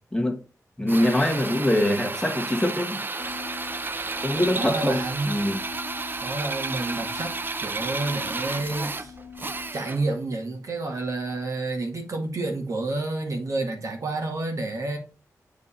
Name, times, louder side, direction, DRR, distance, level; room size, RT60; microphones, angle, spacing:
voice 1, 0.8-3.0 4.2-5.6, left 1 dB, 10° left, 1.6 m, -24 dB
Drill, 0.9-10.1, right 3 dB, 35° right, 0.5 m, -32 dB
sound 1, 3.2-9.7, left 6 dB, 50° left, 1.3 m, -44 dB
voice 2, 4.6-5.3 6.2-9.1 9.7-15.0, right 2 dB, 60° right, 1.9 m, -29 dB
7.8 x 4.0 x 4.2 m
wide cardioid pair, 80°, 6 cm